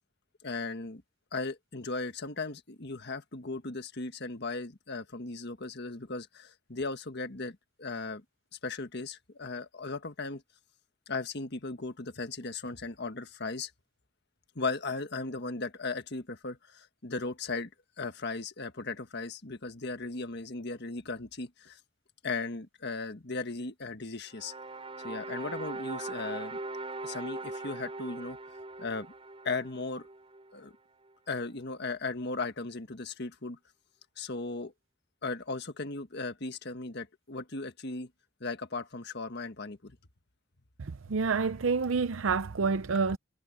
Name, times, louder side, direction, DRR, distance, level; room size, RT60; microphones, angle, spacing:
voice 1, 0.4-1.0 1.3-8.2 8.6-10.4 11.1-13.7 14.5-17.7 18.0-21.8 22.2-24.5 25.0-26.6 27.0-28.4 28.8-29.1 29.4-30.1 30.5-30.7 31.3-33.6 34.2-34.7 35.2-38.1 38.4-40.0, left 3 dB, 55° left, 1.5 m, -37 dB
sound 1, 24.3-30.5, right 2 dB, 30° right, 4.5 m, -40 dB
voice 2, 40.8-43.2, right 5 dB, 85° right, 0.6 m, -28 dB
head